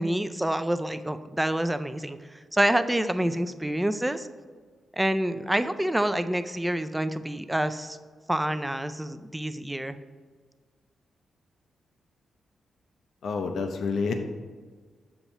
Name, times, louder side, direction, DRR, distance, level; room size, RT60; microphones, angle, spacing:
voice 1, 0.0-4.3 4.9-8.0 8.3-10.0, right 1 dB, 10° right, 11 dB, 0.3 m, -27 dB
voice 2, 13.2-14.1, left 5 dB, 75° left, 5 dB, 0.5 m, -28 dB
7.0 x 2.9 x 5.4 m, 1.5 s
cardioid pair, 100°, 0 cm